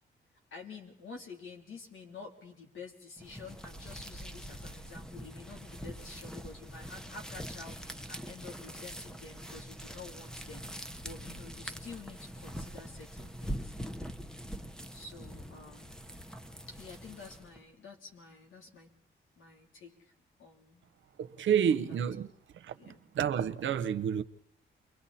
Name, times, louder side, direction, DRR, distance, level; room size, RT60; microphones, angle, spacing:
voice 1, 0.5-10.7 11.0-13.7 14.9-15.9 16.7-18.9 19.4-20.1 20.4-20.8 21.7-22.0 22.8-23.0, left 4 dB, 85° left, 3.4 m, -49 dB
sound 1, 3.2-17.6, equal, 5° left, 1.0 m, -43 dB
voice 2, 21.2-22.3 22.6-22.7 23.2-24.2, right 8 dB, 75° right, 1.0 m, -29 dB
30.0 x 23.0 x 4.3 m
cardioid pair, 90°, 20 cm